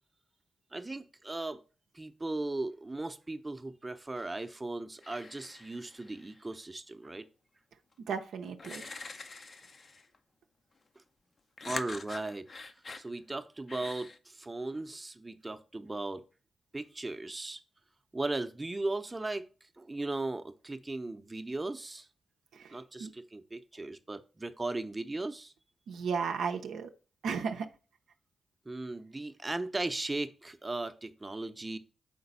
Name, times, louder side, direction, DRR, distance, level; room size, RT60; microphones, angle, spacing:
voice 1, 0.7-1.6 1.9-7.3 11.7-12.5 13.0-16.2 16.7-17.6 18.1-19.5 19.8-22.1 22.7-25.5 28.7-31.8, right 2 dB, 25° right, 0.7 m, -37 dB
sound 1, 4.2-4.6 5.0-6.4 7.9-8.0 8.6-10.2 11.6-13.1 13.7-14.2, left 3 dB, 50° left, 0.6 m, -45 dB
voice 2, 8.1-8.9 22.5-23.1 25.9-26.9 27.2-27.7, right 6 dB, 80° right, 0.5 m, -35 dB
5.1 x 3.9 x 5.4 m
supercardioid pair, 40°, 0 cm